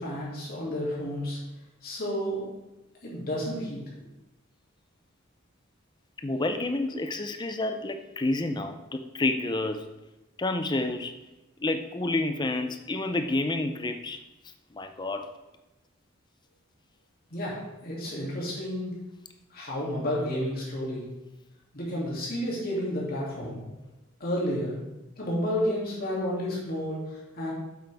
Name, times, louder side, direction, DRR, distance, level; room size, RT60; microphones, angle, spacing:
voice 1, 0.0-1.4 1.8-2.5 3.0-4.1 17.3-19.0 19.5-21.0 21.7-23.6 24.2-24.8 25.2-27.5, equal, 50° left, -5 dB, 2.8 m, -31 dB
voice 2, 6.2-9.8 10.4-11.1 11.6-14.2 14.8-15.3, left 2 dB, 20° left, 7 dB, 0.5 m, -29 dB
7.9 x 7.9 x 3.5 m, 1.0 s
head